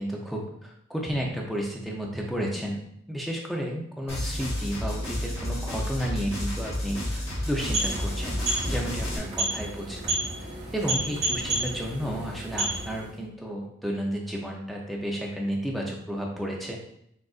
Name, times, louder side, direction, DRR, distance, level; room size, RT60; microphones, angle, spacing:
voice 1, 0.0-2.8 3.1-10.2 10.7-16.8, equal, ahead, -1 dB, 0.5 m, -32 dB
sound 1, 4.1-9.2, left 1 dB, 30° left, 1.1 m, -31 dB
sound 2, 7.4-13.2, right 2 dB, 50° right, 1.6 m, -31 dB
6.2 x 2.4 x 2.4 m, 0.74 s
head